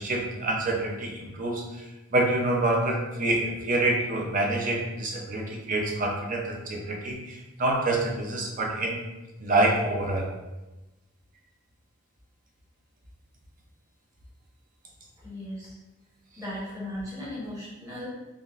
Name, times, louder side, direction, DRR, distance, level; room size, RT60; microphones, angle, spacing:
voice 1, 0.0-1.6 2.1-9.0 9.4-10.3, right 2 dB, 40° right, 0 dB, 0.6 m, -26 dB
voice 2, 15.2-15.8 16.4-18.1, left 1 dB, 15° right, -7 dB, 1.1 m, -37 dB
3.6 x 2.6 x 2.4 m, 1.1 s
head